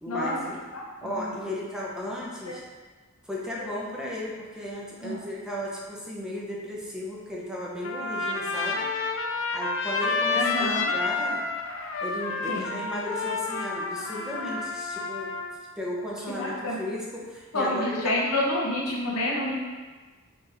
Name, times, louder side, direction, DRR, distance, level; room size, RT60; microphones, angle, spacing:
voice 1, 0.0-0.6 1.0-2.6 3.2-8.9 9.5-11.4 12.0-15.3 15.8-18.2, left 1 dB, 5° right, -5 dB, 0.6 m, -35 dB
voice 2, 0.7-1.4 2.5-2.6 3.6-3.7 5.0-5.3 10.3-10.9 12.5-12.9 16.3-16.8 17.5-19.5, left 1 dB, 90° left, -3 dB, 0.9 m, -29 dB
Trumpet, 7.8-15.5, left 3 dB, 65° left, 0.4 m, -29 dB
5.3 x 2.9 x 2.5 m, 1.3 s
head